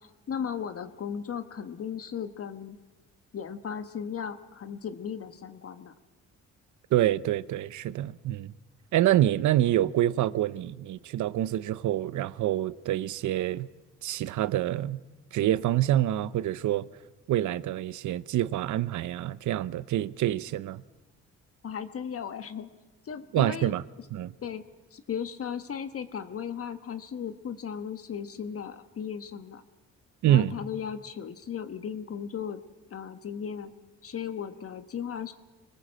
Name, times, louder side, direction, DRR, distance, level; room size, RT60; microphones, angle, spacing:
voice 1, 0.3-2.8 3.3-5.9 21.6-22.7 23.0-23.7 24.4-24.6 24.9-29.6 30.3-32.6 32.9-33.7 34.0-35.3, left 7 dB, 50° left, 1.3 m, -36 dB
voice 2, 6.9-8.5 8.9-13.7 14.0-15.0 15.3-16.9 17.3-20.8 23.3-23.8 24.1-24.3 30.2-30.5, right 13 dB, 75° right, 0.8 m, -26 dB
25.5 x 19.5 x 7.6 m
cardioid pair, 90°, 30 cm